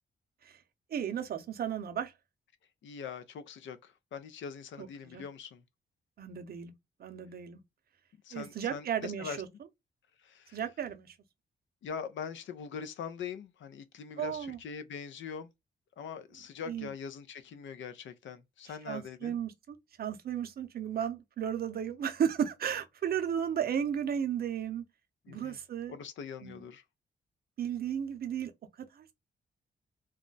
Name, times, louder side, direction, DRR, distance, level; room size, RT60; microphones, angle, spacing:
voice 1, 0.9-2.1 4.8-5.2 6.2-6.7 7.0-7.6 8.3-9.5 10.5-11.1 14.2-14.6 16.7-16.9 18.9-24.8 25.3-26.0 26.4-26.6 27.6-28.5 29.0-29.1, right 8 dB, 55° right, 0.5 m, -34 dB
voice 2, 2.8-5.6 8.2-9.4 10.2-10.6 11.8-15.5 16.0-19.4 25.3-25.6 25.9-26.8, left 6 dB, 80° left, 0.5 m, -42 dB
2.3 x 2.0 x 3.8 m
wide cardioid pair, 170°, 19 cm